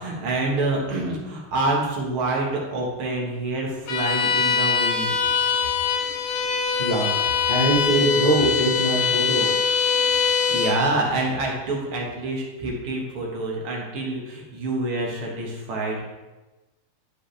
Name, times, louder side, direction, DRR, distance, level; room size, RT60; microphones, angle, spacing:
voice 1, 0.0-5.1 10.5-16.0, right 2 dB, 85° right, -2 dB, 2.4 m, -27 dB
Bowed string instrument, 3.9-10.9, left 6 dB, 85° left, 1.6 m, -23 dB
voice 2, 6.8-9.5, right 1 dB, 30° left, -5 dB, 1.5 m, -23 dB
11.0 x 5.1 x 3.4 m, 1.1 s
omnidirectional pair, 2.3 m